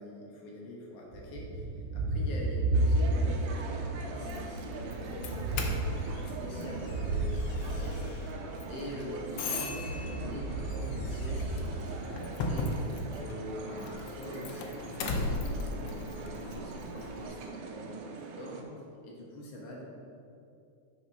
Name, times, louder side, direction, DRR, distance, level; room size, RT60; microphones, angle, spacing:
voice 1, 0.0-5.8 6.1-8.0 8.7-12.7 13.1-15.5 15.8-18.7 19.0-19.8, left 1 dB, 55° left, -2 dB, 2.2 m, -44 dB
Thunder, 1.1-3.5 3.9-8.7 9.7-12.4, right 2 dB, 70° right, 2.0 m, -33 dB
sound 1, 2.7-18.6, right 4 dB, 90° right, 2.4 m, -43 dB
Doorbell, 4.1-17.3, left 2 dB, 75° left, 1.3 m, -38 dB
8.2 x 6.1 x 5.4 m, 2.5 s
omnidirectional pair, 3.5 m